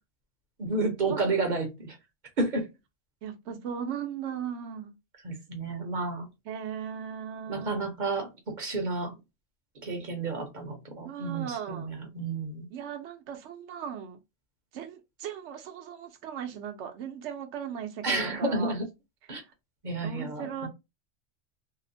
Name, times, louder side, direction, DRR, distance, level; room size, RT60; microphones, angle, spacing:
voice 1, 0.6-2.0 2.4-2.7 5.2-6.3 7.5-8.3 8.6-9.2 9.8-12.7 18.0-18.8 19.3-19.4 19.8-20.7, right 3 dB, 45° right, 0.8 m, -31 dB
voice 2, 3.2-4.9 6.5-7.8 11.0-11.9 12.7-14.2 14.7-18.7 20.0-20.7, right 8 dB, 75° right, 0.9 m, -37 dB
2.8 x 2.0 x 2.5 m
omnidirectional pair, 1.2 m